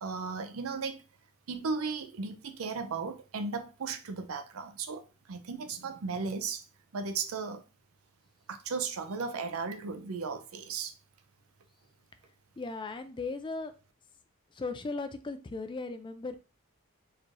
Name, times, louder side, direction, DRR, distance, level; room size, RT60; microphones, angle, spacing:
voice 1, 0.0-1.0 1.5-6.6 6.9-7.6 8.5-10.9, right 4 dB, 75° right, 0.6 m, -36 dB
voice 2, 12.6-13.7 14.5-16.4, left 3 dB, 20° left, 0.4 m, -37 dB
4.5 x 3.2 x 2.5 m
head